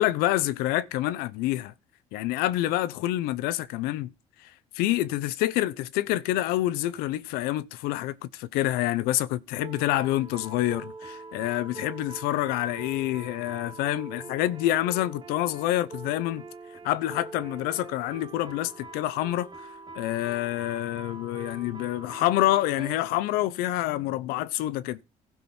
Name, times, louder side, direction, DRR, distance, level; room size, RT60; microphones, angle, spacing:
voice 1, 0.0-1.7 2.1-4.1 4.4-4.5 4.7-16.4 16.8-19.5 19.9-25.0, left 15 dB, 85° left, 0.7 m, -27 dB
sound 1, 9.6-23.0, right 3 dB, 30° right, 2.0 m, -43 dB
15.5 x 6.1 x 4.3 m
supercardioid pair, 80°, 15 cm